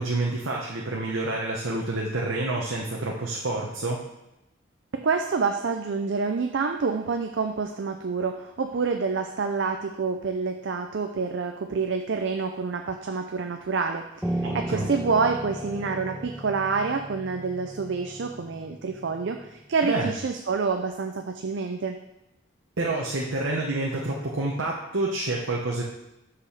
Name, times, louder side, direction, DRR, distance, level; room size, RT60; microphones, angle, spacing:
voice 1, 0.0-4.0 14.4-14.9 19.8-20.1 22.8-25.8, right 2 dB, 85° right, -2 dB, 1.0 m, -28 dB
voice 2, 4.9-22.0, right 4 dB, 65° right, 5 dB, 0.5 m, -27 dB
Piano, 14.2-19.5, right 1 dB, 5° right, 0.4 m, -35 dB
5.8 x 5.0 x 6.4 m, 0.89 s
head